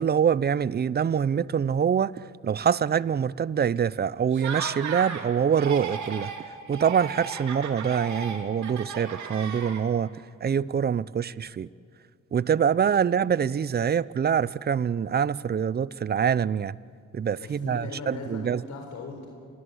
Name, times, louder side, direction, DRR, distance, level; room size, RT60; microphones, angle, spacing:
voice 1, 0.0-6.3 6.7-10.1 10.4-11.7 12.3-16.8 17.1-18.6, right 7 dB, 35° right, 0.6 m, -25 dB
Laughter, 4.3-5.3 5.5-6.4 6.7-10.1, right 6 dB, 70° right, 3.1 m, -35 dB
voice 2, 17.3-19.3, left 4 dB, 70° left, 4.2 m, -39 dB
27.5 x 22.5 x 8.0 m
cardioid pair, 90°, 30 cm